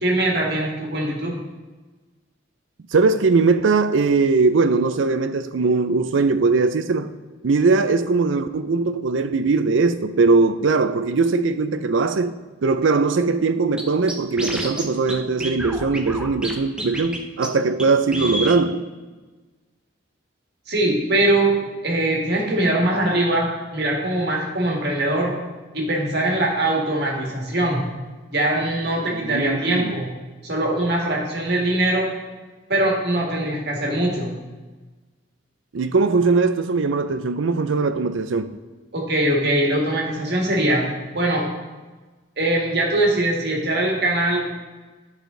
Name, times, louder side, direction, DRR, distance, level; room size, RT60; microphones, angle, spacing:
voice 1, 0.0-1.4 20.7-25.4 25.7-27.8 28.3-30.1 30.4-32.1 32.7-34.3 38.9-41.4 42.4-44.5, right 1 dB, 55° right, 1.9 m, -22 dB
voice 2, 2.9-7.1 7.4-12.3 12.6-18.9 29.2-29.9 35.7-38.6, right 4 dB, 75° right, 0.5 m, -20 dB
Scratching (performance technique), 13.8-13.9 14.1-14.8 15.1-15.2 15.4-16.5 16.8-17.2 17.4-17.5 17.8-17.9 18.1-18.6, right 1 dB, 5° right, 0.6 m, -28 dB
11.0 x 4.9 x 3.9 m
head